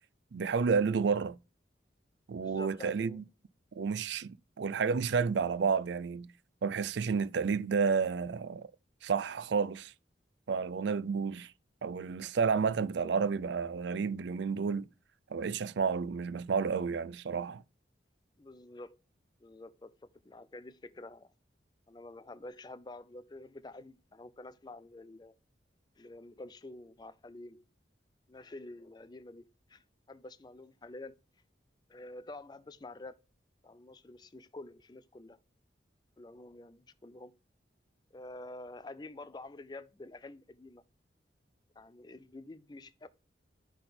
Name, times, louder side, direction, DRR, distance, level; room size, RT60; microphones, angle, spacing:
voice 1, 0.3-1.4 2.3-3.2 3.8-6.3 6.6-8.7 9.0-9.9 10.5-11.5 11.8-14.9 15.3-17.6, right 5 dB, 70° right, 0.4 m, -31 dB
voice 2, 2.4-3.2 18.4-19.0 19.4-21.3 21.9-25.3 26.0-27.6 28.3-31.2 31.9-33.2 33.6-35.4 36.2-37.4 38.1-40.8 41.8-43.1, left 2 dB, 25° left, 0.4 m, -48 dB
5.9 x 3.5 x 5.8 m
head